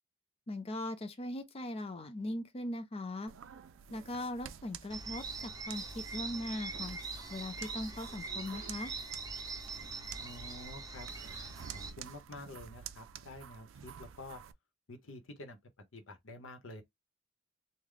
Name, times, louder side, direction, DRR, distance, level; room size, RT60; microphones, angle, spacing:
voice 1, 0.5-3.3 3.9-7.0 7.3-8.9, left 1 dB, 30° left, 0.6 m, -40 dB
sound 1, 3.3-14.5, right 9 dB, 75° right, 0.4 m, -51 dB
sound 2, 4.9-11.9, right 4 dB, 20° right, 1.0 m, -42 dB
voice 2, 10.2-11.1 11.7-14.4 14.9-15.6 15.9-16.8, left 2 dB, 80° left, 0.9 m, -49 dB
3.3 x 2.1 x 3.8 m
head